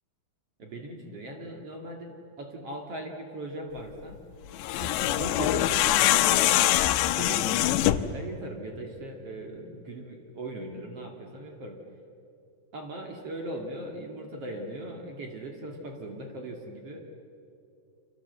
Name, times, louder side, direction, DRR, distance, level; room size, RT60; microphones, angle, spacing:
voice 1, 0.6-4.2 4.8-11.8 12.7-17.0, right 1 dB, 45° right, 2 dB, 2.3 m, -39 dB
sound 1, 4.5-8.2, left 14 dB, 90° left, 3.0 m, -23 dB
29.0 x 26.0 x 8.0 m, 2.7 s
omnidirectional pair, 4.9 m